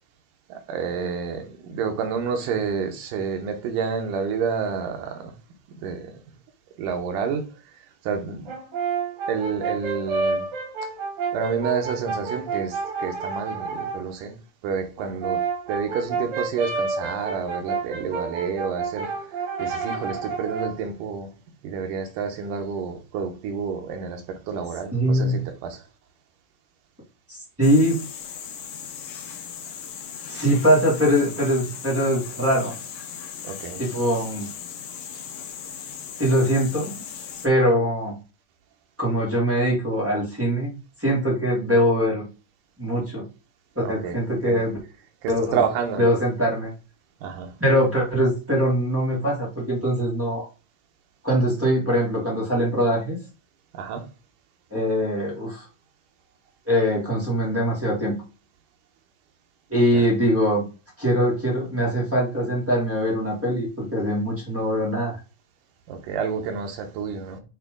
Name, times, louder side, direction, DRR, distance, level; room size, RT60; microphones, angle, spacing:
voice 1, 0.5-5.3 5.8-6.2 6.8-7.5 8.0-8.5 9.3-10.5 11.3-14.3 14.6-15.4 15.7-19.1 19.6-21.3 21.6-25.8 33.4-33.8 43.8-44.2 44.4-44.6 45.2-46.1 47.2-47.5 53.7-54.0 59.9-60.0 65.9-67.4, right 6 dB, 85° right, 2.5 m, -29 dB
Brass instrument, 8.4-14.0 15.0-20.8, right 5 dB, 65° right, 3.2 m, -29 dB
voice 2, 24.9-25.4 27.3-28.0 30.3-32.8 33.8-34.5 36.2-37.0 37.4-38.2 39.0-42.2 42.8-43.2 43.9-44.8 45.3-45.6 46.0-46.7 47.6-50.5 51.2-53.2 54.7-55.6 56.7-58.1 59.7-60.7 61.0-65.2, equal, 5° right, 1.3 m, -22 dB
sound 1, 27.6-37.5, left 8 dB, 85° left, 2.6 m, -38 dB
8.6 x 3.0 x 3.8 m
omnidirectional pair, 3.7 m